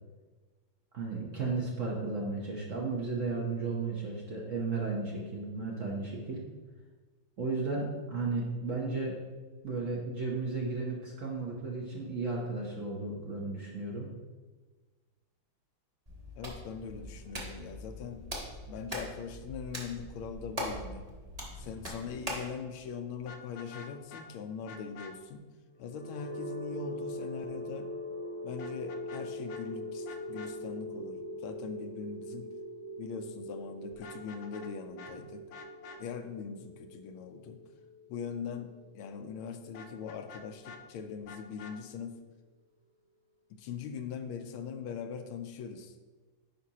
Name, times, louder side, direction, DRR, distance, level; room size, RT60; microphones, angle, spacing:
voice 1, 0.9-6.4 7.4-9.2 9.6-14.1, right 3 dB, 50° right, -2 dB, 0.9 m, -34 dB
Hands, 16.1-22.5, equal, 20° right, 1.1 m, -41 dB
voice 2, 16.4-18.2 18.7-21.1 21.6-25.4 25.8-27.9 28.4-32.5 33.0-35.4 36.0-37.6 38.1-42.2 43.5-45.9, left 6 dB, 85° left, 7 dB, 1.4 m, -41 dB
Vehicle horn car horn honking, 23.2-24.3 24.7-25.1 28.6-29.2 29.5-29.6 30.1-30.5 33.9-34.7 35.0-35.1 35.5-36.0 39.7-40.8 41.3-41.8, left 4 dB, 70° left, 1.0 m, -48 dB
sound 1, 25.8-39.7, equal, 75° right, 2.0 m, -42 dB
9.7 x 5.2 x 2.9 m, 1.3 s
omnidirectional pair, 2.3 m